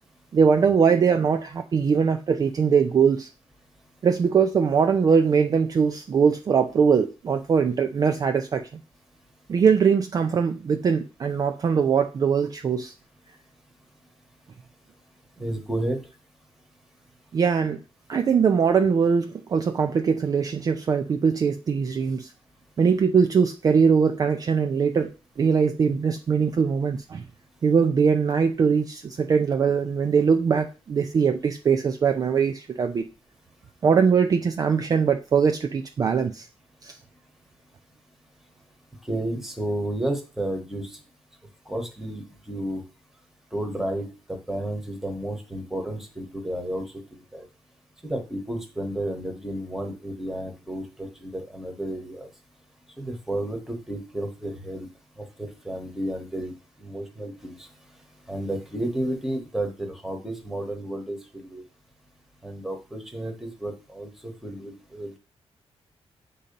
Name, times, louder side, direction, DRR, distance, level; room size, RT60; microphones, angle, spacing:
voice 1, 0.3-3.3 4.0-8.7 9.5-12.9 17.3-17.8 18.1-22.3 22.8-25.1 25.4-27.2 27.6-33.1 33.8-36.5 36.8-37.0, right 6 dB, 35° right, 5 dB, 0.4 m, -21 dB
voice 2, 15.4-16.1 39.0-41.0 41.7-42.8 43.5-47.0 47.3-47.4 48.0-52.3 53.0-54.9 55.2-56.5 56.8-57.7 58.3-61.6 62.4-65.1, right 1 dB, 5° right, 3 dB, 1.1 m, -32 dB
7.3 x 2.8 x 5.2 m, 0.32 s
wide cardioid pair, 180°, 11 cm